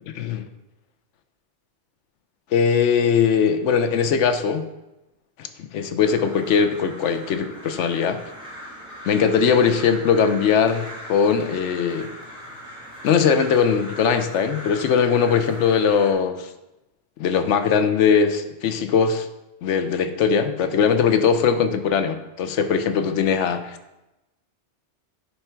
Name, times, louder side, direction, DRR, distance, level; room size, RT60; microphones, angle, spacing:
voice 1, 2.5-4.7 5.4-8.2 9.0-12.1 13.0-16.5 17.2-19.3 19.6-23.6, left 6 dB, 85° left, 9 dB, 1.0 m, -20 dB
Crow, 6.0-16.1, equal, 5° right, 1.5 m, -40 dB
9.8 x 3.5 x 4.5 m, 0.96 s
omnidirectional pair, 1.2 m